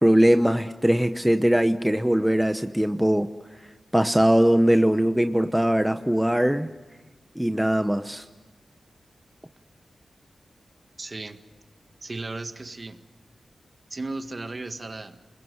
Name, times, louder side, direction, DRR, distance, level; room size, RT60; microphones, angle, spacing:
voice 1, 0.0-3.3 3.9-6.7 7.4-8.2, equal, 5° right, 8 dB, 1.0 m, -21 dB
voice 2, 11.0-11.4 12.0-13.0 13.9-15.2, right 2 dB, 35° right, 8 dB, 1.7 m, -35 dB
27.5 x 21.5 x 8.0 m, 1.3 s
wide cardioid pair, 80°, 0 cm